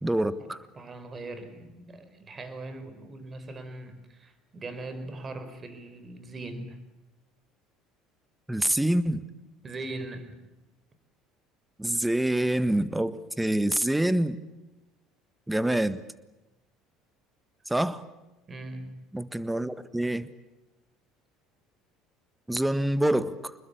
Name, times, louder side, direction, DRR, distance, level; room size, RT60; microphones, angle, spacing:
voice 1, 0.0-0.6 8.5-9.2 11.8-14.4 15.5-16.0 17.7-18.0 19.1-20.3 22.5-23.5, right 1 dB, 5° right, 14 dB, 1.5 m, -26 dB
voice 2, 0.7-6.8 9.6-10.4 18.5-19.1, right 2 dB, 30° right, 10 dB, 4.8 m, -40 dB
25.5 x 21.5 x 8.6 m, 1.0 s
hypercardioid pair, 65°, 0 cm